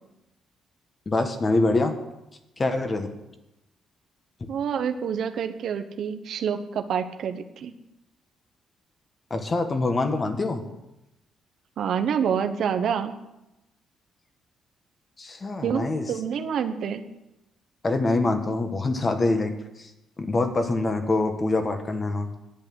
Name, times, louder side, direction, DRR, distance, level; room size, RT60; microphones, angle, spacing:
voice 1, 1.0-1.9 2.6-3.1 9.3-10.6 15.2-16.1 17.8-19.5 19.8-19.9 20.2-22.3, left 2 dB, 30° left, 6 dB, 1.7 m, -25 dB
voice 2, 4.5-7.7 11.8-13.1 15.6-17.0, right 7 dB, 70° right, 7 dB, 1.0 m, -27 dB
10.5 x 8.5 x 7.8 m, 0.93 s
cardioid pair, 90°, 0 cm